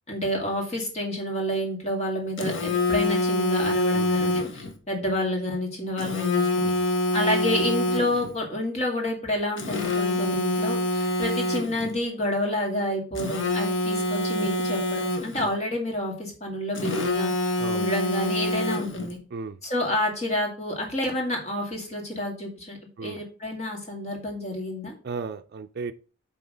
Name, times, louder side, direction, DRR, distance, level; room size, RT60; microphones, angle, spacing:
voice 1, 0.1-6.7 7.1-19.2 19.6-24.9, left 1 dB, 35° left, 2.3 m, -29 dB
Telephone, 2.4-4.7 6.0-8.4 9.6-11.9 13.2-15.5 16.8-19.1, left 1 dB, 65° left, 1.2 m, -26 dB
voice 2, 3.9-4.4 6.7-6.8 17.6-17.9 19.3-19.6 23.0-23.2 25.0-25.9, right 4 dB, 50° right, 0.4 m, -35 dB
8.1 x 3.8 x 5.0 m
head